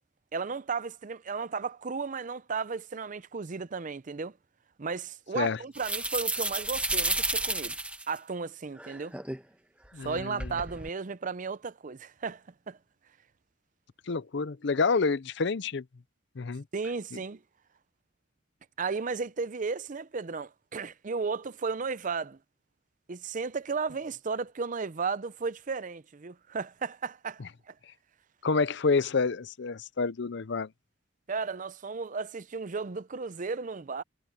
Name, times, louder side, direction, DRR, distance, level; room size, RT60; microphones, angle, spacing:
voice 1, 0.3-4.3 4.8-7.8 8.1-9.1 10.0-12.8 16.7-17.4 18.8-22.4 23.1-27.7 31.3-34.0, right 4 dB, 40° right, 0.6 m, -34 dB
sound 1, 5.7-8.2 8.8-9.4 10.0-10.9, right 2 dB, 5° right, 1.3 m, -31 dB
voice 2, 9.9-10.5 14.1-15.8 16.4-16.6 17.1-17.2 27.4-27.5 28.4-30.7, left 4 dB, 65° left, 0.6 m, -28 dB
head